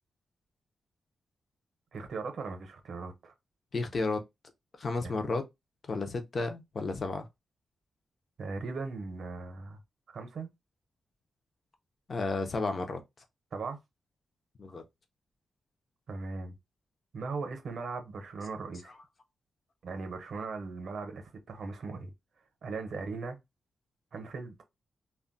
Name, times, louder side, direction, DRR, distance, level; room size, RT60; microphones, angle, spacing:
voice 1, 1.9-3.3 5.0-5.1 8.4-9.8 10.1-10.5 13.5-13.8 16.1-16.5 17.1-19.0 19.8-22.1 22.6-23.4 24.1-24.5, right 4 dB, 55° right, 0.7 m, -38 dB
voice 2, 3.7-4.2 4.8-5.4 5.9-7.2 12.1-13.0 14.6-14.8, left 3 dB, 35° left, 0.5 m, -32 dB
2.2 x 2.1 x 3.7 m
wide cardioid pair, 180°, 0 cm